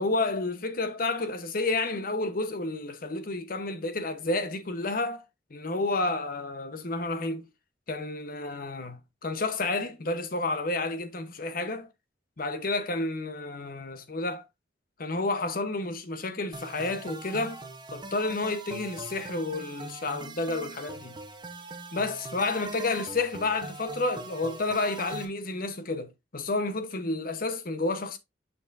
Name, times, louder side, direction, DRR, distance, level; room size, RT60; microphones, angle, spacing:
voice 1, 0.0-5.2 5.5-7.4 7.9-11.9 12.4-14.4 15.0-17.6 17.9-21.2 21.9-28.2, left 2 dB, 55° left, 0.9 m, -30 dB
sound 1, 16.5-25.2, right 2 dB, 25° right, 1.0 m, -41 dB
7.0 x 5.4 x 2.6 m
head